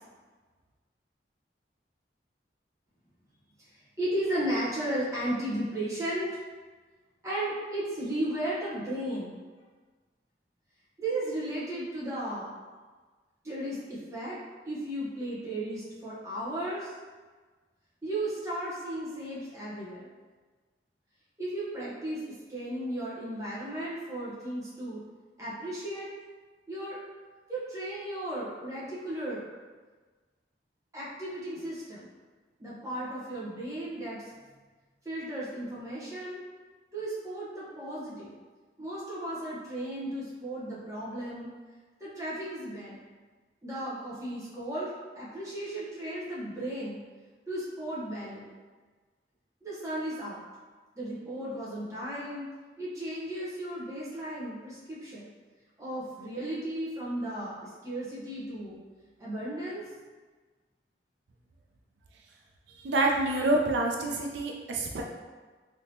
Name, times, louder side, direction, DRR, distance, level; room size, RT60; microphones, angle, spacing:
voice 1, 4.0-6.3 7.2-9.4 11.0-12.6 13.4-14.4 14.6-16.9 18.0-20.1 21.4-25.0 25.4-26.1 26.7-27.0 27.5-29.4 30.9-32.1 32.6-34.2 35.0-36.4 36.9-38.3 38.8-41.5 42.0-43.0 43.6-47.0 47.5-48.5 49.6-50.4 51.0-52.5 52.8-55.3 55.8-58.8 59.2-59.8, right 1 dB, 20° right, -9 dB, 0.9 m, -35 dB
voice 2, 62.8-65.0, right 2 dB, 80° right, 0 dB, 0.4 m, -27 dB
3.4 x 2.8 x 2.8 m, 1.4 s
head